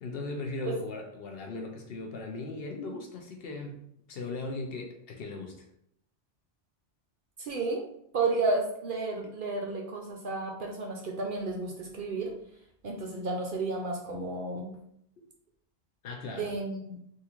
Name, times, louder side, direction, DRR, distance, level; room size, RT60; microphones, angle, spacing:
voice 1, 0.0-5.7 16.0-16.5, left 3 dB, 60° left, 2 dB, 0.7 m, -38 dB
voice 2, 7.4-7.9 8.1-12.3 12.8-14.8 16.4-17.0, right 3 dB, 60° right, 0 dB, 0.6 m, -32 dB
3.6 x 2.5 x 2.9 m, 0.73 s
omnidirectional pair, 1.2 m